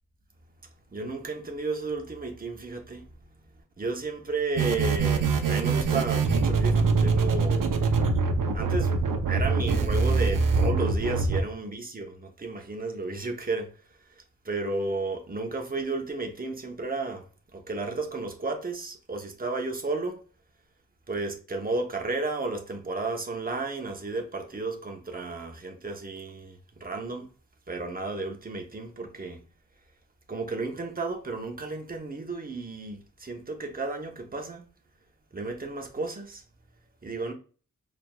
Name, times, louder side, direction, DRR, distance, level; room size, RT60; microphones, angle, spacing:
voice 1, 0.9-3.1 3.5-7.7 8.5-9.0 9.3-17.3 17.5-20.2 21.1-27.3 27.7-29.4 30.3-34.6 35.3-36.4 37.0-37.3, right 3 dB, 30° right, 0.8 m, -33 dB
sound 1, 4.5-11.4, right 4 dB, 85° right, 0.7 m, -24 dB
4.5 x 3.4 x 2.2 m
wide cardioid pair, 120°, 32 cm